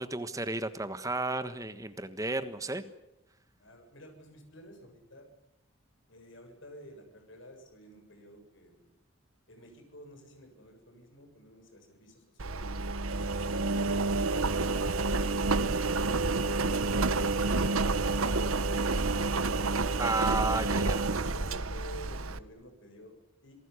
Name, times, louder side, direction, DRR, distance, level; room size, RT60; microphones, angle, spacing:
voice 1, 0.0-2.8 20.0-21.1, right 2 dB, 15° right, 11 dB, 1.3 m, -32 dB
voice 2, 3.6-5.3 6.1-8.9 9.5-12.7 21.0-23.5, equal, 60° left, 5 dB, 7.4 m, -52 dB
Engine, 12.4-22.4, right 3 dB, 85° right, 1.2 m, -29 dB
27.0 x 18.5 x 9.9 m, 0.87 s
head